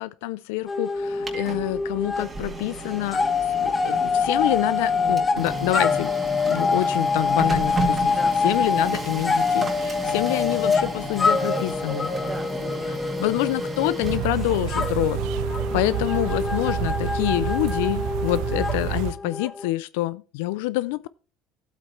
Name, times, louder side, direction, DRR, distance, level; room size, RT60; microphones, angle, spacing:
voice 1, 0.0-3.2 3.6-6.1 6.5-8.1 8.4-12.1 13.2-15.2 15.7-21.1, left 17 dB, 90° left, 0.4 m, -26 dB
sound 1, 0.7-2.3 2.6-19.7, left 4 dB, 25° left, 1.1 m, -25 dB
Printer, 1.0-16.7, right 2 dB, 25° right, 2.2 m, -34 dB
voice 2, 4.9-5.7 8.1-8.3 11.3-13.6 14.3-14.6 15.7-16.2, right 1 dB, 10° right, 2.8 m, -41 dB
sound 2, 14.0-19.1, right 10 dB, 75° right, 0.8 m, -29 dB
12.0 x 8.2 x 3.2 m
supercardioid pair, 105°, 0 cm